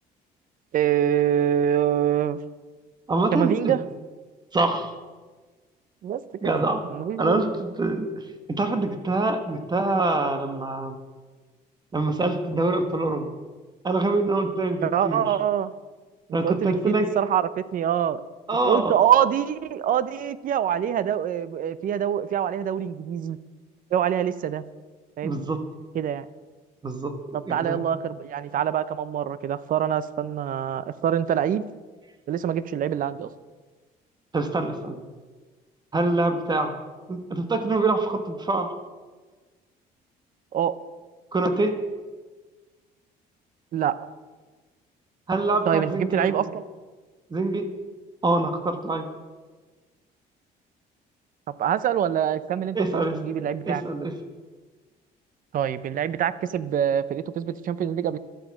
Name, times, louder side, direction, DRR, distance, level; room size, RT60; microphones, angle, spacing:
voice 1, 0.7-2.4 3.3-3.8 6.0-6.5 6.8-7.4 14.8-15.7 16.3-18.2 18.7-23.4 23.9-24.6 25.2-25.4 25.9-26.3 27.3-31.6 32.3-33.3 40.5-40.8 43.7-44.0 45.7-46.6 51.6-53.8 55.5-58.2, right 9 dB, 55° right, 16 dB, 0.7 m, -25 dB
voice 2, 3.1-3.7 4.5-4.9 6.4-6.8 7.2-11.0 11.9-13.3 13.8-15.2 16.3-17.1 18.5-18.9 25.2-25.6 26.8-27.8 34.3-35.0 35.9-36.7 37.1-38.7 41.3-41.7 45.3-46.4 47.3-47.6 48.2-49.1 52.7-53.2 53.7-54.1, right 2 dB, 25° right, 7 dB, 1.4 m, -25 dB
12.0 x 8.9 x 7.2 m, 1.3 s
cardioid pair, 110°, 17 cm